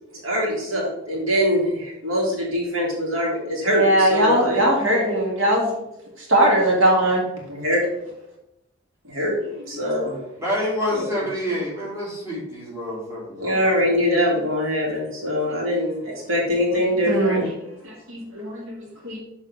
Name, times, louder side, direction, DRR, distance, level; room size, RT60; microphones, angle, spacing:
voice 1, 0.1-4.7 7.5-7.8 9.0-10.2 10.9-11.3 13.4-17.4, equal, 90° right, -3 dB, 2.2 m, -23 dB
voice 2, 3.7-5.7 6.2-7.3 17.1-17.5 17.8-18.8 19.0-19.2, right 1 dB, 70° right, -3 dB, 2.0 m, -20 dB
voice 3, 10.4-13.6, equal, 15° right, -7 dB, 2.7 m, -27 dB
7.1 x 3.4 x 5.3 m, 0.86 s
head